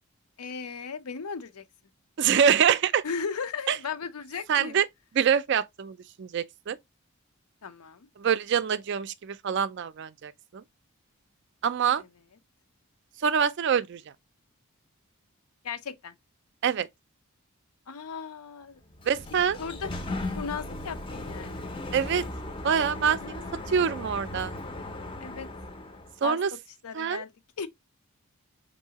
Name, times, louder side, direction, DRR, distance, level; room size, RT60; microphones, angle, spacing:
voice 1, 0.4-1.6 3.0-4.8 7.6-8.1 12.0-12.1 15.6-16.1 17.9-18.8 19.6-19.9 20.3-21.7 23.2-23.7 25.2-25.5 26.2-26.4 26.8-27.7, left 5 dB, 85° left, 0.6 m, -36 dB
voice 2, 2.2-3.0 3.7-3.8 4.5-4.9 5.1-6.8 8.2-10.6 11.6-12.0 13.2-14.0 16.6-16.9 19.0-19.6 21.9-22.2 22.6-23.4 23.7-24.5 26.2-26.5 26.9-27.2, right 7 dB, 50° right, 0.3 m, -25 dB
Sliding door, 18.8-26.2, left 2 dB, 25° left, 0.5 m, -37 dB
5.4 x 2.6 x 2.8 m
head